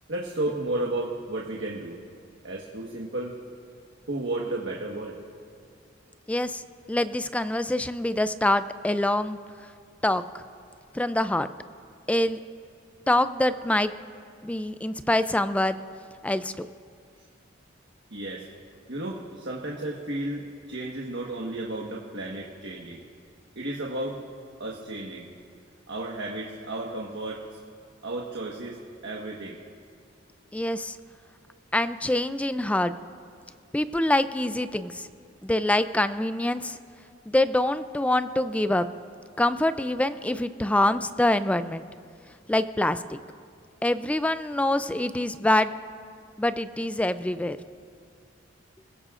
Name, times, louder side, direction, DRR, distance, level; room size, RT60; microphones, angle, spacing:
voice 1, 0.1-2.0 2.4-3.3 4.1-5.1 18.1-18.4 18.9-23.0 23.5-24.2 24.6-25.3 25.9-27.4 28.0-28.8 29.0-29.6, right 2 dB, 65° right, -3 dB, 1.4 m, -33 dB
voice 2, 6.3-6.6 6.9-9.4 10.0-10.4 10.9-11.5 12.1-12.4 13.1-13.9 14.4-15.8 16.2-16.7 30.5-31.0 31.7-32.9 33.7-35.1 35.4-36.8 37.3-38.9 39.4-41.8 42.5-43.2 43.8-45.7 46.4-47.6, left 1 dB, 5° left, 12 dB, 0.3 m, -25 dB
28.5 x 16.0 x 2.5 m, 2.3 s
head